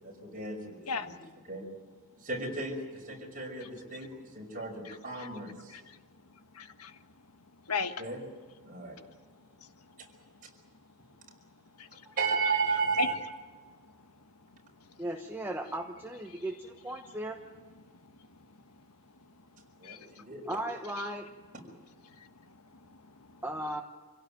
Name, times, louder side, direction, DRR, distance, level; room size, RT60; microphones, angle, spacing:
voice 1, 0.0-0.8 1.5-1.6 2.2-4.1 4.3-5.7 8.0-8.2 8.6-9.0 10.4-10.5 12.2-13.1 19.8-20.4, right 4 dB, 40° right, 0 dB, 5.8 m, -34 dB
voice 2, 4.8-5.3 5.7-6.0 6.5-7.0 7.6-8.0 8.9-9.1 9.6-10.0 11.3-11.4 11.7-12.1 13.0-13.1 13.6-13.9 14.8-14.9 16.3-16.4 17.9-18.8 19.2-19.3 19.8-20.2 22.0-23.4, left 4 dB, 85° left, 9 dB, 1.5 m, -39 dB
voice 3, 15.0-17.4 20.5-21.3 23.4-23.8, right 1 dB, 10° right, 3 dB, 1.2 m, -36 dB
26.5 x 17.0 x 9.2 m, 1.5 s
head